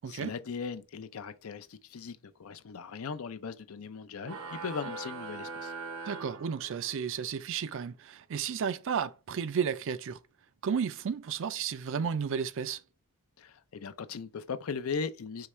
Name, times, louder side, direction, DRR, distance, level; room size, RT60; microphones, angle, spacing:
voice 1, 0.1-5.7 13.4-15.5, left 5 dB, 70° left, 0.5 m, -38 dB
sound 1, 4.2-7.1, right 4 dB, 80° right, 0.8 m, -41 dB
voice 2, 6.1-10.2 10.6-12.8, right 7 dB, 60° right, 0.4 m, -33 dB
4.8 x 3.2 x 3.1 m
head